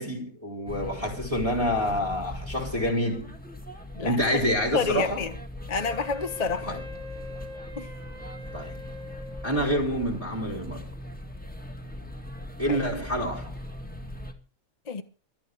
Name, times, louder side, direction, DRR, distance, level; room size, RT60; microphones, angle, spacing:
voice 1, 0.0-3.3 4.0-5.2 6.6-6.8 8.5-8.7 9.4-10.9 12.6-13.5, equal, 20° right, 4.0 m, -27 dB
sound 1, 0.7-14.3, left 1 dB, 5° left, 1.8 m, -40 dB
voice 2, 4.7-5.3 5.7-6.8 7.7-7.9 12.7-12.8 14.9-15.0, left 4 dB, 30° left, 1.1 m, -29 dB
Wind instrument woodwind instrument, 5.8-10.0, left 2 dB, 60° right, 2.2 m, -43 dB
22.5 x 12.5 x 3.2 m
omnidirectional pair, 1.6 m